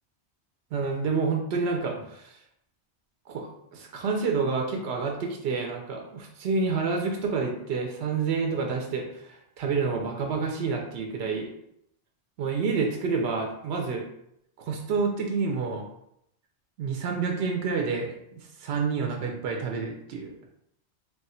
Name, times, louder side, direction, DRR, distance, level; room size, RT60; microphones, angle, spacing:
voice 1, 0.7-2.4 3.3-11.5 12.4-14.0 14.6-15.8 16.8-20.3, right 4 dB, 70° right, 1 dB, 0.8 m, -29 dB
3.2 x 2.3 x 4.2 m, 0.76 s
omnidirectional pair, 1.2 m